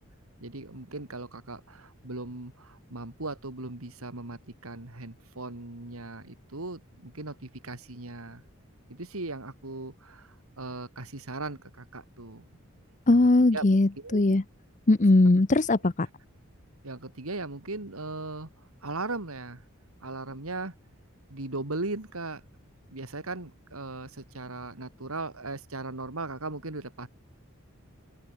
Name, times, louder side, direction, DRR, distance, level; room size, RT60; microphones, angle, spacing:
voice 1, 0.4-8.4 8.9-12.5 13.5-14.4 16.8-18.5 18.8-19.6 20.0-20.7 21.3-22.4 22.9-27.1, right 2 dB, 85° right, 2.7 m, -38 dB
voice 2, 13.1-14.4 14.9-16.1, left 2 dB, 35° left, 0.7 m, -20 dB
open air
head